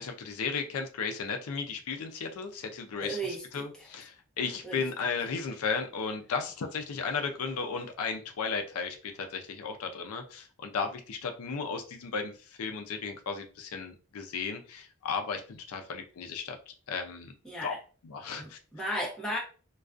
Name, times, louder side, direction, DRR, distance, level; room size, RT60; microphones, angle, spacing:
voice 1, 0.0-3.2 3.5-12.3 12.6-16.6 16.9-17.3 17.6-17.7 18.0-18.6, left 5 dB, 80° left, 0.4 m, -34 dB
voice 2, 3.0-3.6 4.6-4.8 17.4-17.8 18.4-19.4, right 1 dB, 5° left, 0.6 m, -35 dB
2.3 x 2.3 x 2.4 m
head